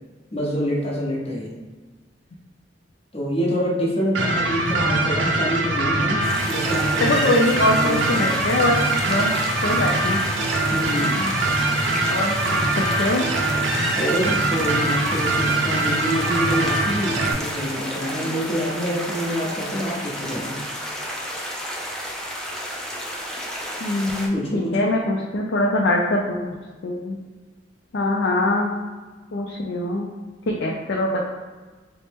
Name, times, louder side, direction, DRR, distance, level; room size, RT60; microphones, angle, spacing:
voice 1, 0.3-1.5 3.1-8.3 10.7-11.4 13.9-20.6 24.3-24.9, equal, 35° left, -4 dB, 0.9 m, -26 dB
sound 1, 4.1-17.3, right 2 dB, 85° right, 0.5 m, -23 dB
voice 2, 4.7-5.2 7.0-8.8 9.1-9.3 9.6-10.2 12.1-13.3 23.8-26.4 26.8-27.2 27.9-28.7 29.3-30.1 30.5-31.2, left 1 dB, 70° left, -1 dB, 0.4 m, -23 dB
sound 2, 6.2-24.3, equal, 5° left, 0.4 m, -32 dB
4.2 x 2.1 x 3.3 m, 1.4 s
head